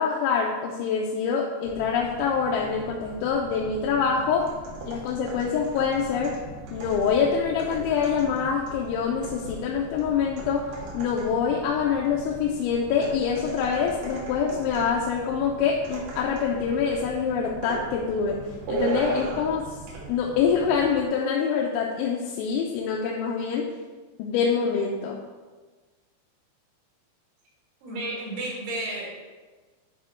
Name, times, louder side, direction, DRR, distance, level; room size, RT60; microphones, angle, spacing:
voice 1, 0.0-4.5 4.8-6.4 6.7-18.4 18.7-19.8 20.1-23.7 24.2-25.2, left 6 dB, 85° left, -1 dB, 3.1 m, -25 dB
Boat Water vehicle, 1.6-21.1, right 2 dB, 45° right, 1.0 m, -44 dB
sound 1, 4.4-11.5 13.0-15.0 15.8-16.6 16.9-17.1 17.6-17.9 18.7-19.6 19.9-20.1, right 3 dB, 65° right, 2.2 m, -37 dB
voice 2, 27.8-29.1, right 1 dB, 85° right, -5 dB, 4.6 m, -32 dB
10.5 x 3.7 x 4.4 m, 1.3 s
omnidirectional pair, 5.3 m